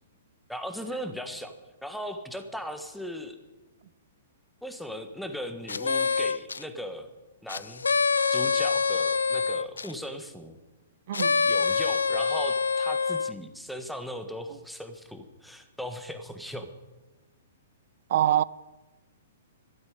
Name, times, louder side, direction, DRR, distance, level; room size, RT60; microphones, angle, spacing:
voice 1, 0.5-1.5 1.8-3.4 4.6-7.1 7.4-7.8 8.3-10.6 11.5-16.7, equal, ahead, 1.4 m, -38 dB
sound 1, 5.7-6.6 7.5-9.9 11.1-13.3, left 5 dB, 85° left, 0.4 m, -25 dB
voice 2, 11.1-11.5 18.1-18.4, right 12 dB, 55° right, 0.4 m, -24 dB
13.0 x 8.8 x 9.5 m
hypercardioid pair, 120°, 0 cm